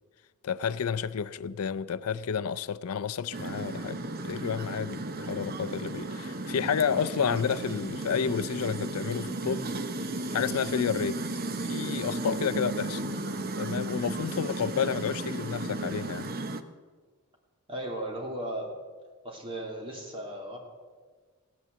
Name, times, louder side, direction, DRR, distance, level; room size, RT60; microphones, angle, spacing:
voice 1, 0.4-9.8 10.3-11.2 11.6-13.0 13.5-16.3, left 7 dB, 75° left, 0.5 m, -30 dB
sound 1, 3.3-16.6, right 2 dB, 45° right, 0.9 m, -34 dB
voice 2, 17.7-18.7 19.2-20.6, right 1 dB, 25° right, 3.1 m, -36 dB
16.5 x 10.0 x 8.0 m
head